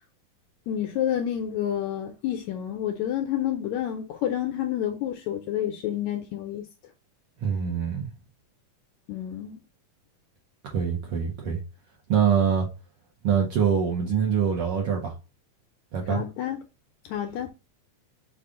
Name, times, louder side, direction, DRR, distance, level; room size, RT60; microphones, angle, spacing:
voice 1, 0.7-6.7 9.1-9.6 16.1-16.6 17.1-17.5, left 11 dB, 80° left, 1.7 m, -29 dB
voice 2, 7.4-8.1 10.6-11.6 12.1-12.7 13.2-15.1 15.9-16.2, right 7 dB, 65° right, 1.5 m, -24 dB
5.2 x 2.4 x 3.6 m
omnidirectional pair, 3.6 m